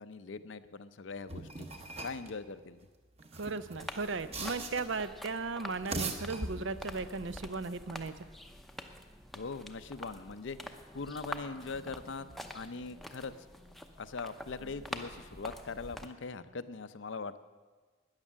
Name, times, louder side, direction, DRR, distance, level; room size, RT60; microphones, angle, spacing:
voice 1, 0.0-1.7 2.0-2.8 9.3-12.3 12.5-13.5 14.0-17.4, left 4 dB, 65° left, 12 dB, 0.6 m, -41 dB
sound 1, 1.3-2.3 3.2-5.0 5.7-7.0, right 3 dB, 30° right, 1.0 m, -40 dB
voice 2, 3.3-8.3, right 4 dB, 65° right, 13 dB, 0.6 m, -36 dB
sound 2, 3.8-16.1, left 1 dB, ahead, 0.7 m, -47 dB
12.5 x 9.8 x 7.4 m, 1.4 s
head